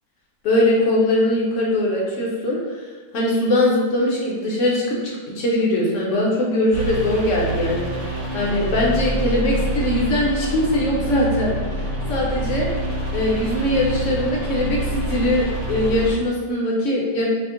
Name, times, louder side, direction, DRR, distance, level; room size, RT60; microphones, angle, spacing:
voice 1, 0.4-2.8 3.1-5.0 5.3-11.8 12.1-12.7 13.1-17.3, left 1 dB, 60° left, -4 dB, 0.9 m, -21 dB
sound 1, 6.7-16.1, right 1 dB, 40° right, 1.0 m, -26 dB
2.8 x 2.0 x 3.6 m, 1.4 s
omnidirectional pair, 1.7 m